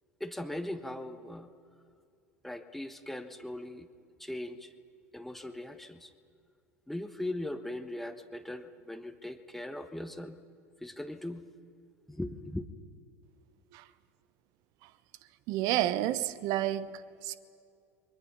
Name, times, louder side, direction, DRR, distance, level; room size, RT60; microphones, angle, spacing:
voice 1, 0.2-1.5 2.4-3.9 4.2-4.7 5.1-6.1 6.9-10.4 10.8-11.4 12.1-12.7, left 1 dB, ahead, 1.3 m, -39 dB
voice 2, 15.5-17.4, right 13 dB, 50° right, 1.0 m, -30 dB
29.5 x 23.0 x 5.7 m
figure-of-eight pair, 75°, 8 cm